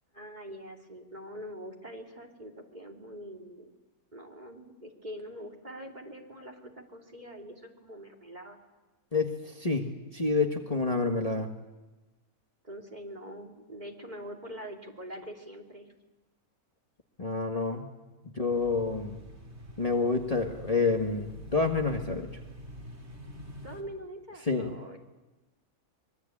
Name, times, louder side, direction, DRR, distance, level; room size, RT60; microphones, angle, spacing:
voice 1, 0.1-3.7 4.1-8.6 12.6-15.9 23.6-25.0, equal, 30° right, 4 dB, 3.1 m, -44 dB
voice 2, 9.1-11.5 17.2-17.9 18.2-19.2 19.8-22.3 24.5-24.7, left 3 dB, 25° left, 2 dB, 1.6 m, -28 dB
sound 1, 18.5-23.8, right 1 dB, 45° right, 3.5 m, -46 dB
25.5 x 23.0 x 8.7 m, 1.1 s
omnidirectional pair, 1.5 m